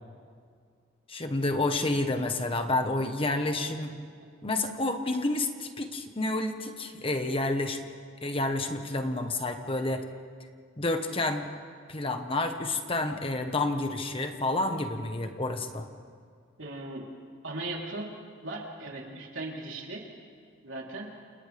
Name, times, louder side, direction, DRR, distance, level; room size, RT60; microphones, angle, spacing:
voice 1, 1.1-3.9 4.4-7.8 8.2-10.0 10.8-11.5 11.9-15.9, left 2 dB, 30° left, 6 dB, 1.3 m, -29 dB
voice 2, 16.6-17.1 17.4-18.1 18.4-20.0 20.6-21.1, right 2 dB, 85° right, -2 dB, 3.7 m, -38 dB
29.0 x 29.0 x 3.5 m, 2.1 s
head